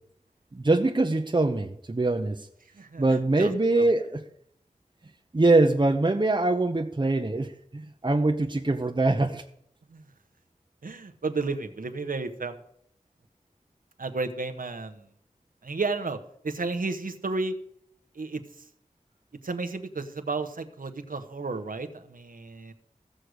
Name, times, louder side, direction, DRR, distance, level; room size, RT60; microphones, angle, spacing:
voice 1, 0.5-2.5 3.0-4.2 5.3-9.4, right 2 dB, 35° right, 3 dB, 0.8 m, -23 dB
voice 2, 2.8-3.5 3.8-3.9 9.9-10.1 10.8-12.6 14.0-15.0 15.6-16.2 16.4-17.5 18.1-18.4 19.4-22.7, right 3 dB, 85° right, 7 dB, 1.0 m, -32 dB
15.5 x 6.5 x 6.4 m, 0.71 s
wide cardioid pair, 55°, 14 cm